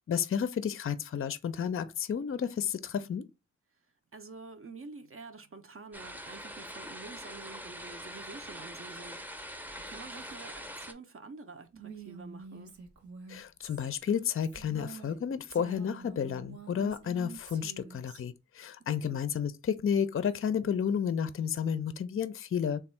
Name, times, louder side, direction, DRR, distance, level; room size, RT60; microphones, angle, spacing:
voice 1, 0.1-3.3 13.3-22.8, left 7 dB, 45° left, 0.4 m, -31 dB
voice 2, 4.1-9.4 9.9-12.7 19.0-19.2, right 4 dB, 45° right, 0.5 m, -48 dB
sound 1, 5.9-10.9, equal, 5° right, 0.6 m, -43 dB
Female speech woman speaking, 11.7-15.2 15.5-18.2, right 5 dB, 65° right, 1.0 m, -47 dB
3.4 x 2.3 x 4.3 m
wide cardioid pair, 50°, 30 cm